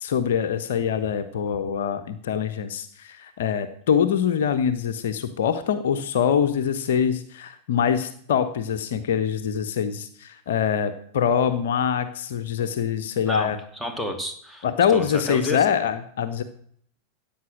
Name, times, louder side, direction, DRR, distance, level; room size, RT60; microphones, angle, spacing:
voice 1, 0.0-13.6 14.6-16.4, left 8 dB, 60° left, 10 dB, 1.0 m, -24 dB
voice 2, 13.3-15.6, left 1 dB, ahead, 4 dB, 2.7 m, -31 dB
15.5 x 8.9 x 6.2 m, 0.63 s
figure-of-eight pair, 90°, 0 cm